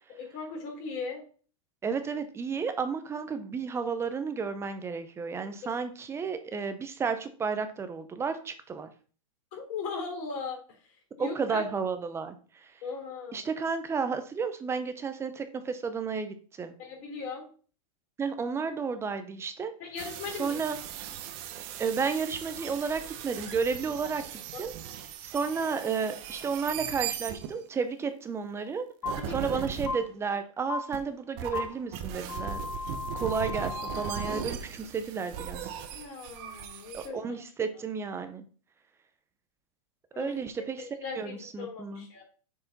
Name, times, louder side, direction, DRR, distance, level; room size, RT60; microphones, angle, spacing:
voice 1, 0.2-1.2 9.5-10.6 11.2-11.6 12.8-13.5 16.8-17.5 19.8-20.6 24.5-24.6 29.2-29.6 35.9-37.4 40.1-40.4 41.0-42.2, left 5 dB, 45° left, 0 dB, 3.6 m, -38 dB
voice 2, 1.8-8.9 11.2-12.8 13.3-16.7 18.2-19.7 20.4-20.8 21.8-24.2 24.6-24.7 25.2-32.6 33.1-35.7 36.9-38.4 40.2-40.9 41.2-42.1, right 5 dB, 15° right, 9 dB, 0.7 m, -32 dB
sound 1, 20.0-27.7 29.0-29.9 30.9-31.0 31.4-37.1, right 9 dB, 45° right, 0.9 m, -38 dB
sound 2, 29.0-29.1 29.9-30.0 30.7-30.8 31.5-31.6 32.3-34.4, left 4 dB, 80° left, 2.7 m, -35 dB
6.9 x 4.7 x 4.1 m, 0.40 s
hypercardioid pair, 135°, 18 cm